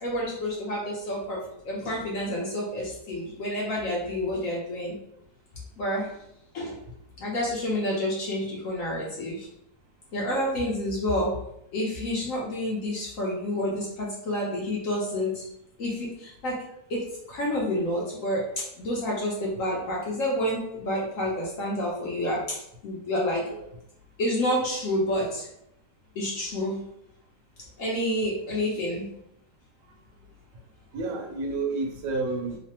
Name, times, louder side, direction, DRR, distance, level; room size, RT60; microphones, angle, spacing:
voice 1, 0.0-5.0 5.8-6.1 6.5-6.8 7.2-9.5 10.1-11.3 11.7-15.4 15.8-16.6 16.9-18.5 18.8-23.4 24.2-25.5 26.1-26.9 27.8-29.1, left 1 dB, 65° left, -4 dB, 0.9 m, -29 dB
voice 2, 30.9-32.6, right 3 dB, 80° right, 1 dB, 1.2 m, -30 dB
3.1 x 2.0 x 2.9 m, 0.76 s
omnidirectional pair, 1.8 m